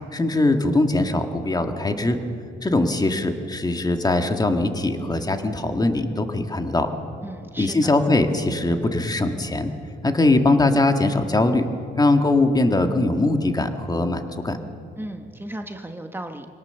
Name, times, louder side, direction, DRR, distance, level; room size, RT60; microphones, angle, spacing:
voice 1, 0.1-2.2 2.6-6.9 7.6-9.7 10.0-11.7 12.0-14.6, left 2 dB, 20° left, 6 dB, 1.9 m, -21 dB
voice 2, 7.2-7.8 15.0-16.5, right 1 dB, 10° right, 5 dB, 1.2 m, -35 dB
25.0 x 18.0 x 7.1 m, 2.4 s
cardioid pair, 90°, 20 cm